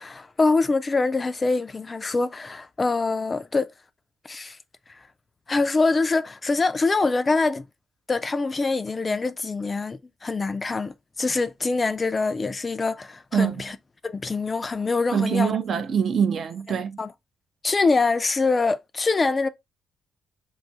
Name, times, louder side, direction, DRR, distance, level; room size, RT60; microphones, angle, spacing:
voice 1, 0.0-3.7 4.3-4.6 5.5-7.6 8.1-13.8 14.0-15.5 17.0-17.1 17.6-19.5, left 3 dB, 30° left, 0.3 m, -24 dB
voice 2, 13.3-13.6 15.1-17.0, right 7 dB, 55° right, 0.4 m, -24 dB
2.5 x 2.4 x 3.8 m
cardioid pair, 90°, 0 cm